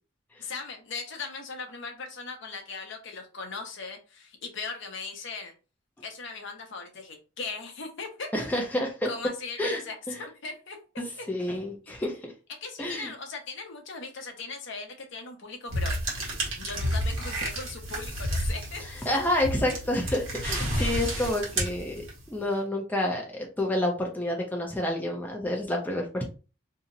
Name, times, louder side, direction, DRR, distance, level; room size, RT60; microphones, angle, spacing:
voice 1, 0.4-5.5 6.0-8.3 9.0-10.8 11.2-11.3 12.6-16.0 16.6-19.1 20.6-21.3, left 4 dB, 55° left, 4 dB, 0.7 m, -39 dB
voice 2, 8.3-9.1 9.6-10.2 11.3-12.3 12.8-13.1 18.8-22.0 22.3-26.2, left 1 dB, 10° left, 0 dB, 0.5 m, -29 dB
sound 1, 15.7-22.4, equal, 60° right, 1.2 m, -31 dB
2.7 x 2.1 x 3.7 m, 0.34 s
head